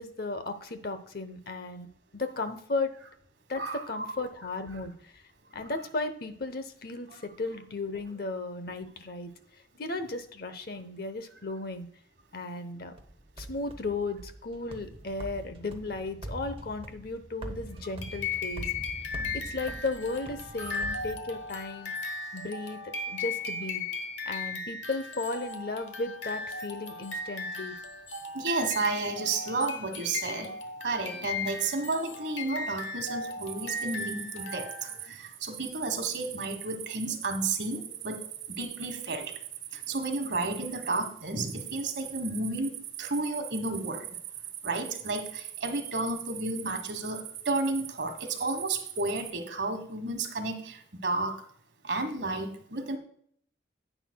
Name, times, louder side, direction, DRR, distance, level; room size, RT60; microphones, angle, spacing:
voice 1, 0.0-1.9 2.1-2.9 3.5-5.2 5.5-9.3 9.8-11.9 12.3-12.9 13.4-18.7 19.3-21.9 22.3-23.9 24.2-27.7, left 3 dB, 50° left, 10 dB, 0.8 m, -35 dB
voice 2, 3.6-4.1 7.1-7.2 20.6-20.8 28.3-30.5 30.8-38.2 38.5-39.4 39.7-44.1 44.6-51.4 51.8-53.0, right 3 dB, 65° right, 6 dB, 1.4 m, -32 dB
sound 1, 13.0-21.8, right 1 dB, 30° right, 0.8 m, -43 dB
sound 2, 18.0-35.0, left 3 dB, 80° left, 1.1 m, -37 dB
sound 3, 33.4-49.3, right 12 dB, 80° right, 1.0 m, -42 dB
10.0 x 9.0 x 2.2 m, 0.64 s
head